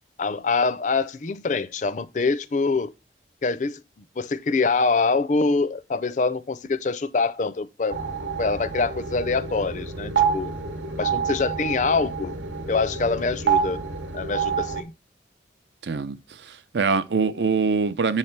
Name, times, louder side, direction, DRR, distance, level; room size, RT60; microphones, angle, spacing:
voice 1, 0.2-2.9 3.4-8.0 8.4-10.5 11.0-12.3 12.7-13.8 14.1-14.9, left 4 dB, 40° left, 0.4 m, -25 dB
sound 1, 7.9-14.8, right 6 dB, 90° right, 1.0 m, -28 dB
voice 2, 15.8-16.2 16.4-18.2, right 5 dB, 70° right, 0.6 m, -23 dB
7.2 x 3.3 x 5.7 m
head